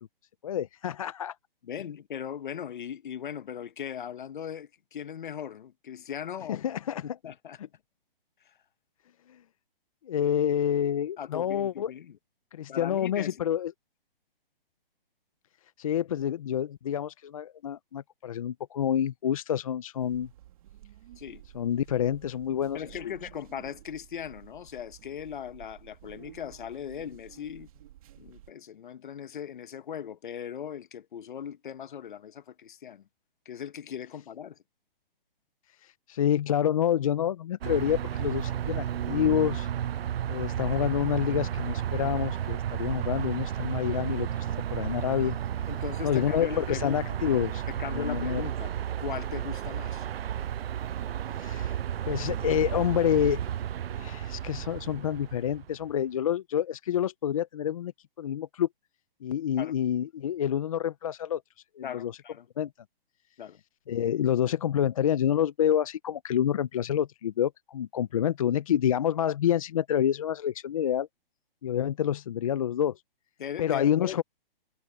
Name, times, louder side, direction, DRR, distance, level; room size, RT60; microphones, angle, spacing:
voice 1, 0.4-1.3 6.5-7.0 9.3-9.4 10.0-11.9 12.5-13.7 15.8-20.3 21.5-23.0 35.8-39.7 40.3-45.4 46.0-47.6 47.9-48.4 51.4-51.8 52.1-53.4 53.9-57.9 58.2-58.7 59.2-61.4 61.8-62.1 62.6-62.7 63.9-71.1 71.6-73.0 73.6-74.2, left 10 dB, 35° left, 0.7 m, -28 dB
voice 2, 1.6-6.7 7.2-7.6 8.4-8.5 11.2-12.2 12.7-13.5 21.2-21.4 22.7-27.7 28.2-33.0 33.4-34.6 45.7-47.2 47.7-50.1 59.6-59.7 61.8-62.5 63.4-63.6 73.4-74.2, left 8 dB, 55° left, 1.3 m, -39 dB
sound 1, 20.0-28.5, right 13 dB, 35° right, 2.0 m, -52 dB
sound 2, 37.6-56.0, right 10 dB, 80° right, 0.5 m, -32 dB
hypercardioid pair, 165°, 29 cm